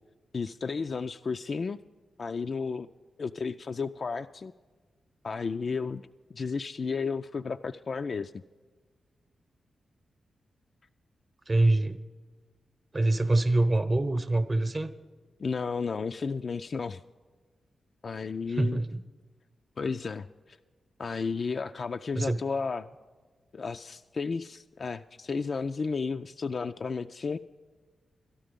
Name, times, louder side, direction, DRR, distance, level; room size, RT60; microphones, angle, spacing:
voice 1, 0.3-1.8 2.2-2.9 3.2-4.5 5.2-6.1 6.3-8.3 15.4-17.0 18.0-18.8 19.8-20.6 21.0-22.9 23.5-27.4, left 5 dB, 55° left, 8 dB, 0.3 m, -33 dB
voice 2, 11.5-12.0 12.9-14.9 18.6-19.0 22.1-22.4, right 2 dB, 40° right, 10 dB, 0.8 m, -25 dB
12.5 x 11.5 x 5.2 m, 1.4 s
supercardioid pair, 40°, 0 cm